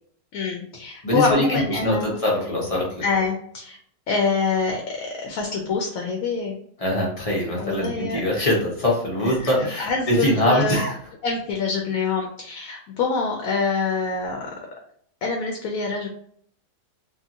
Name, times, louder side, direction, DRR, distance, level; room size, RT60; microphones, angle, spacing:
voice 1, 0.3-2.2 3.0-3.8 4.1-6.6 7.6-8.2 9.2-10.8 11.2-14.5 15.2-16.1, left 4 dB, 75° left, 1 dB, 1.0 m, -25 dB
voice 2, 1.0-3.0 6.8-10.9, left 1 dB, 35° left, -4 dB, 0.6 m, -23 dB
2.8 x 2.5 x 2.5 m, 0.63 s
omnidirectional pair, 1.5 m